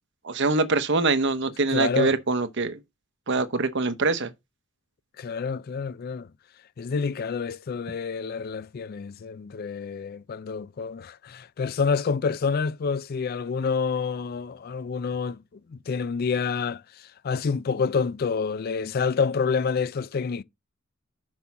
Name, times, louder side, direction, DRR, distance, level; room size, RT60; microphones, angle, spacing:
voice 1, 0.2-2.8 3.3-4.3, right 3 dB, 55° right, 0.9 m, -24 dB
voice 2, 1.7-2.2 5.2-6.3 6.8-15.4 15.7-16.8 17.2-20.4, left 5 dB, 45° left, 0.4 m, -28 dB
6.3 x 5.3 x 5.7 m
head